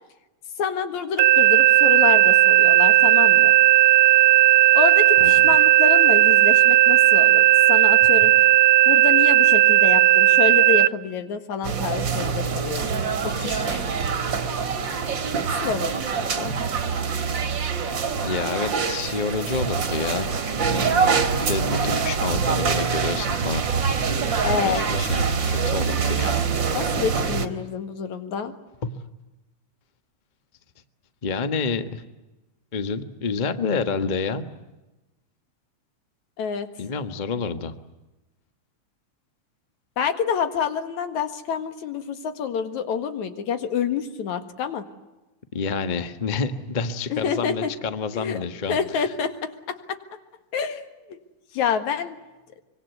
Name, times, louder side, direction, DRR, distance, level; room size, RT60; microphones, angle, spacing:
voice 1, 0.6-3.5 4.7-8.3 8.9-12.9 13.2-13.9 15.6-16.5 24.4-24.8 26.7-28.5 36.4-36.7 40.0-44.8 47.1-47.7 48.1-48.4 48.7-50.0 50.5-51.2 51.5-52.2, left 7 dB, 70° left, 9 dB, 3.1 m, -27 dB
sound 1, 1.2-10.9, right 14 dB, 65° right, 2.2 m, -15 dB
voice 2, 5.2-5.6 18.2-20.3 20.6-23.6 24.6-26.4 28.8-28.9 31.2-32.0 32.7-34.4 36.8-37.7 45.5-48.8, left 4 dB, 85° left, 9 dB, 0.4 m, -28 dB
sound 2, 11.6-27.5, right 5 dB, 40° right, 2.1 m, -25 dB
24.5 x 23.5 x 9.4 m, 1.0 s
omnidirectional pair, 3.5 m